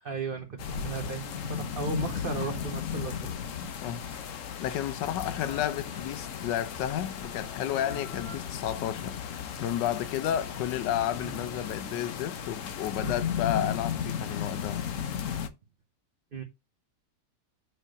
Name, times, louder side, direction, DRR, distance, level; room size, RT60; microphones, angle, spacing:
voice 1, 0.0-3.2 3.8-3.9 7.9-8.0 11.2-11.4 13.0-13.2 16.3-16.4, right 3 dB, 40° right, 1.0 m, -35 dB
sound 1, 0.6-15.5, left 8 dB, 55° left, 1.0 m, -35 dB
Human voice, 3.4-4.5 5.2-6.3 7.2-12.5, left 1 dB, 5° left, 1.2 m, -53 dB
voice 2, 3.6-14.9, left 11 dB, 80° left, 1.3 m, -32 dB
6.3 x 3.2 x 5.2 m
omnidirectional pair, 1.9 m